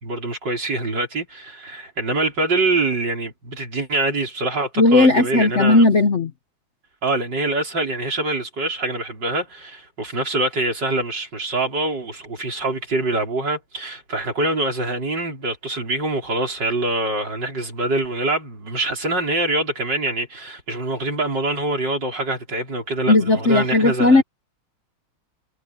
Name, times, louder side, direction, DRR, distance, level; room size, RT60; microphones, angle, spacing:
voice 1, 0.0-5.9 7.0-24.2, right 2 dB, 55° right, 5.8 m, -24 dB
voice 2, 4.8-6.3 23.1-24.2, left 2 dB, 45° left, 1.1 m, -16 dB
omnidirectional pair, 2.3 m